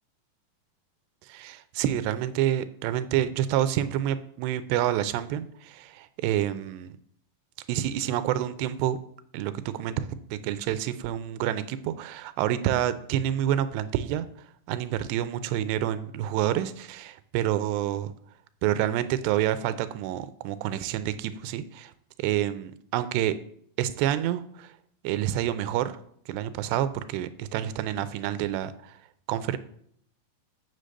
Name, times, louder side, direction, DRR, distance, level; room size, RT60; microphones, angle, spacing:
voice 1, 1.3-6.9 7.7-9.0 9.3-14.3 14.7-18.1 18.6-21.9 22.2-23.4 23.8-24.7 25.0-26.0 26.3-29.0 29.3-29.6, right 12 dB, 85° right, 13 dB, 2.8 m, -28 dB
7.7 x 6.6 x 6.5 m, 0.65 s
omnidirectional pair, 4.9 m